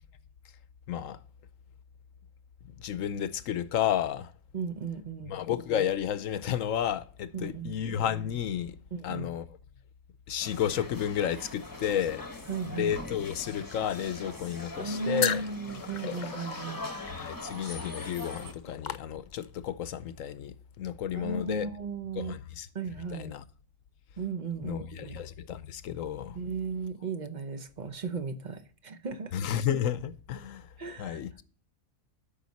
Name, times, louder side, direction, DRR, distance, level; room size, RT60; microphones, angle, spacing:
voice 1, 0.9-1.2 2.8-4.3 5.3-8.8 9.0-9.4 10.3-12.3 12.7-15.4 17.1-21.7 22.2-22.7 23.1-23.4 24.6-26.4 29.3-30.7 31.0-31.4, left 9 dB, 75° left, 1.0 m, -32 dB
voice 2, 4.5-5.3 7.3-7.8 8.9-9.3 12.5-13.1 14.8-17.0 21.1-22.3 22.7-23.3 24.2-25.2 26.3-29.3 30.8-31.2, right 4 dB, 40° right, 0.8 m, -36 dB
sound 1, 10.4-18.5, left 2 dB, 15° left, 1.1 m, -42 dB
sound 2, 15.2-19.7, left 8 dB, 60° left, 0.5 m, -36 dB
12.5 x 5.7 x 4.1 m
omnidirectional pair, 1.4 m